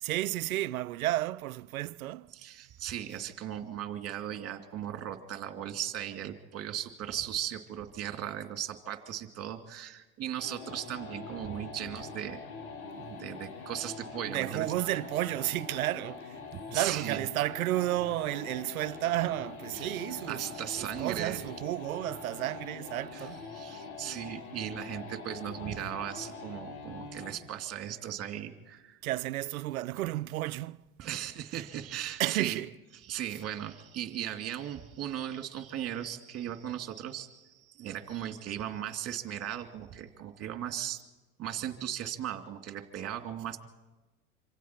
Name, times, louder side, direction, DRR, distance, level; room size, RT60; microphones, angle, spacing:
voice 1, 0.0-2.3 14.3-16.4 16.7-20.4 20.8-23.4 29.0-30.8 31.5-31.6 32.2-32.7, right 16 dB, 80° right, 0.7 m, -32 dB
voice 2, 2.3-12.5 13.0-14.7 16.5-17.3 19.7-20.0 20.3-21.5 23.1-29.0 31.0-32.6 32.9-41.0 41.4-43.6, right 11 dB, 35° right, 2.4 m, -37 dB
sound 1, 10.4-27.4, left 4 dB, 85° left, 4.1 m, -44 dB
26.5 x 25.5 x 4.4 m
hypercardioid pair, 95°, 42 cm